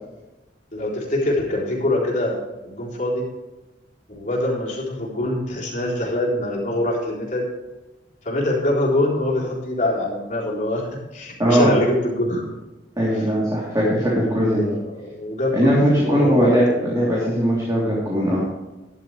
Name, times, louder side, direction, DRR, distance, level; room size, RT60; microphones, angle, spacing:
voice 1, 0.7-3.3 4.1-7.5 8.2-12.5 13.1-13.3 14.6-16.9, left 1 dB, 45° left, -3 dB, 4.0 m, -24 dB
voice 2, 11.4-11.7 13.0-14.7 15.5-18.4, equal, 20° right, -6 dB, 3.4 m, -19 dB
13.0 x 11.5 x 3.3 m, 1.1 s
head